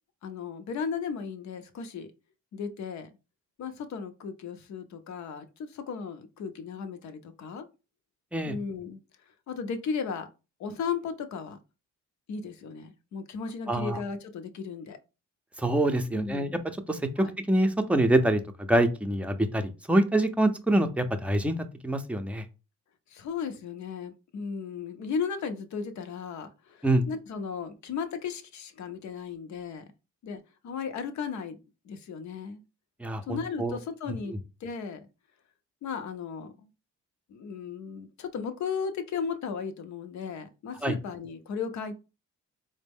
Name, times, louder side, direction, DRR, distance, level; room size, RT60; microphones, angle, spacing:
voice 1, 0.2-2.1 2.5-3.1 3.6-7.7 8.4-9.0 9.5-10.3 10.6-11.6 12.3-15.0 16.1-16.6 17.2-17.3 23.1-29.8 30.2-31.6 31.8-32.6 33.3-35.0 35.8-36.7 37.3-41.9, left 6 dB, 65° left, 0.7 m, -35 dB
voice 2, 13.7-14.0 15.6-22.5 26.8-27.0 33.0-33.8 34.3-34.4 40.8-41.0, right 1 dB, 5° right, 0.5 m, -26 dB
4.1 x 2.1 x 3.4 m
cardioid pair, 90°, 30 cm